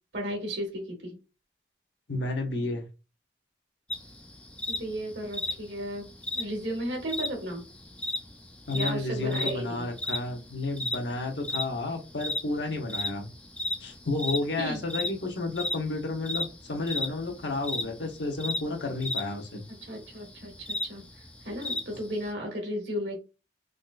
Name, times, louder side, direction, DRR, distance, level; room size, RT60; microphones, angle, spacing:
voice 1, 0.1-1.1 4.7-6.1 6.3-7.6 8.7-9.8 14.6-14.8 19.8-20.5 20.9-21.0 21.4-23.2, equal, 75° right, 1 dB, 1.4 m, -34 dB
voice 2, 2.1-2.9 8.7-13.3 13.8-19.6, left 2 dB, 75° left, 3 dB, 0.9 m, -31 dB
sound 1, 3.9-22.3, left 1 dB, 5° left, 0.3 m, -35 dB
3.7 x 2.3 x 2.3 m, 0.30 s
head